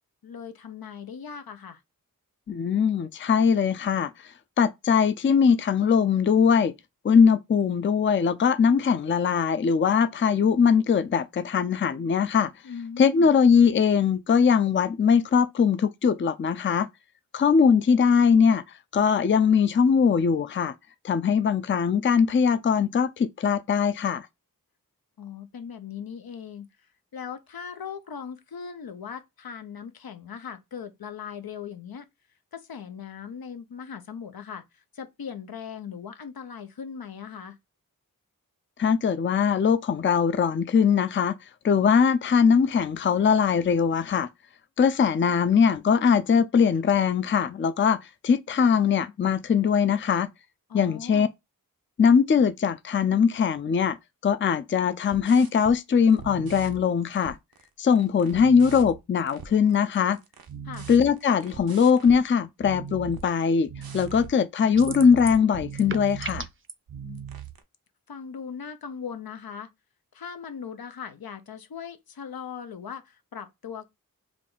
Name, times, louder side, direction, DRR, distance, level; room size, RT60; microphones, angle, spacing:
voice 1, 0.2-1.8 12.6-13.3 25.2-26.9 27.1-32.0 32.5-37.6 50.7-51.3 60.6-60.9 67.0-67.3 68.1-69.7 70.1-73.9, left 7 dB, 80° left, 0.6 m, -39 dB
voice 2, 2.5-4.1 4.6-6.7 7.0-12.5 13.0-16.9 17.3-18.6 18.9-20.7 21.0-24.3 38.8-41.3 41.6-44.3 44.8-50.3 50.7-51.3 52.0-54.0 54.2-57.4 57.8-60.2 60.9-66.5, left 6 dB, 35° left, 0.4 m, -21 dB
sound 1, 55.0-55.8 56.1-57.6 57.9-62.2 62.6-63.3 63.7-64.4 64.7-66.5 66.9-67.6, right 7 dB, 80° right, 0.7 m, -40 dB
sound 2, 64.8-65.4 65.7-66.7, right 5 dB, 35° right, 0.5 m, -36 dB
3.6 x 2.3 x 3.8 m
wide cardioid pair, 45°, 36 cm